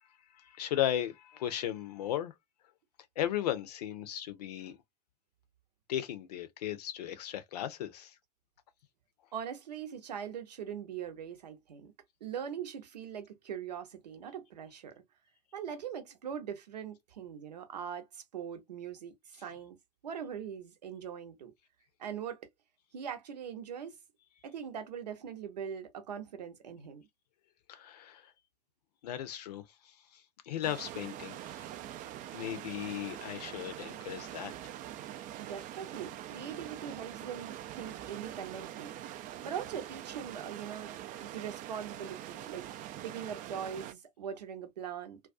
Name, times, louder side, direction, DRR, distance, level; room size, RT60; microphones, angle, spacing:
voice 1, 0.3-2.3 3.2-4.8 5.9-8.2 27.7-28.3 29.0-31.6 32.3-34.5, left 11 dB, 70° left, 0.6 m, -36 dB
voice 2, 9.3-11.9 12.2-15.0 15.5-19.8 20.0-21.5 22.0-22.5 22.9-24.0 24.4-27.0 35.4-38.9 39.4-40.9 41.2-45.2, right 8 dB, 80° right, 0.8 m, -41 dB
sound 1, 30.6-43.9, right 12 dB, 40° right, 0.4 m, -44 dB
2.3 x 2.2 x 2.4 m
figure-of-eight pair, 75°, 21 cm